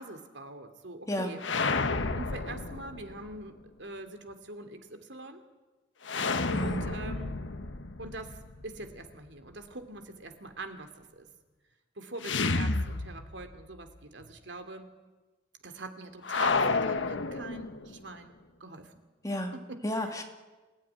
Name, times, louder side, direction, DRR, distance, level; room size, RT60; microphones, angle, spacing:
voice 1, 0.0-1.4 2.1-5.4 6.5-7.4 8.0-11.3 12.0-14.8 15.6-18.3 18.6-18.9 19.5-19.8, right 2 dB, 75° right, 7 dB, 2.7 m, -44 dB
sound 1, 1.4-3.4 6.0-9.0 12.2-13.6 13.9-14.0 16.2-18.0, left 3 dB, 80° left, 1.2 m, -31 dB
voice 2, 6.5-6.8 19.2-19.5 19.8-20.2, equal, 20° left, 3 dB, 2.3 m, -31 dB
27.5 x 17.0 x 9.9 m, 1.2 s
head